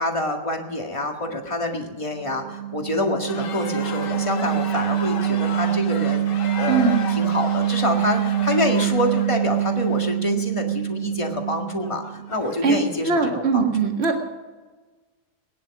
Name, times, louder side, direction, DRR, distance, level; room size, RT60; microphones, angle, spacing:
voice 1, 0.0-6.3 6.6-13.7, left 2 dB, 20° left, 2 dB, 1.8 m, -27 dB
sound 1, 2.2-12.3, right 11 dB, 65° right, 0.6 m, -25 dB
sound 2, 3.3-13.2, left 6 dB, 80° left, 1.8 m, -36 dB
voice 2, 6.7-7.1 12.6-14.2, right 4 dB, 40° right, 3 dB, 2.1 m, -21 dB
20.5 x 10.5 x 6.1 m, 1.3 s
omnidirectional pair, 1.8 m